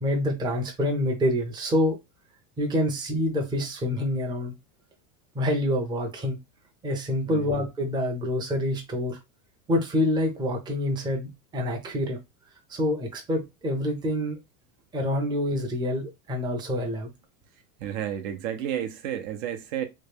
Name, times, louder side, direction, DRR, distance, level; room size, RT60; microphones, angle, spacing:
voice 1, 0.0-2.0 2.6-4.5 5.3-6.4 6.8-9.2 9.7-12.2 12.7-14.4 14.9-17.1, left 1 dB, 10° right, 0.6 m, -27 dB
voice 2, 17.8-19.8, right 10 dB, 60° right, 0.7 m, -31 dB
3.1 x 2.3 x 3.4 m
supercardioid pair, 145°, 43 cm